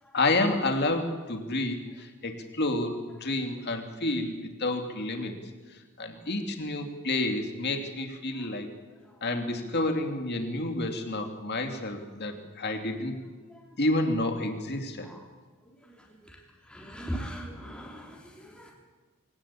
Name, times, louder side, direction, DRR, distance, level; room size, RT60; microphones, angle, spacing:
voice 1, 0.1-5.3 6.0-8.7 9.2-13.1 13.8-15.1, left 2 dB, 50° left, 5 dB, 2.7 m, -29 dB
voice 2, 15.8-18.7, equal, 5° left, -2 dB, 3.3 m, -41 dB
23.0 x 17.5 x 8.5 m, 1.3 s
head